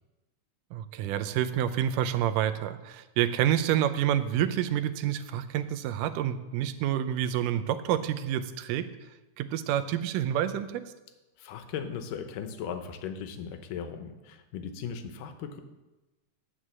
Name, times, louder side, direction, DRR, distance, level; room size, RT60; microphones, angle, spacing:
voice 1, 0.7-8.9 9.4-10.9, right 10 dB, 90° right, 11 dB, 2.2 m, -28 dB
voice 2, 11.4-15.6, left 7 dB, 90° left, 8 dB, 2.5 m, -37 dB
9.9 x 6.5 x 7.4 m, 1.1 s
omnidirectional pair, 3.7 m